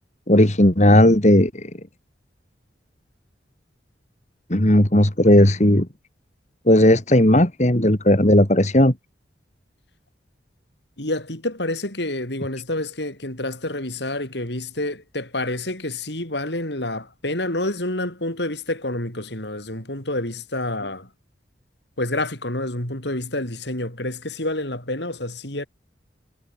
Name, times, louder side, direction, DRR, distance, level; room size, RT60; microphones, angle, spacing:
voice 1, 0.3-1.7 4.5-5.9 6.7-8.9, left 1 dB, 40° left, 2.5 m, -15 dB
voice 2, 11.0-21.1 22.0-25.7, left 1 dB, 70° left, 6.5 m, -28 dB
head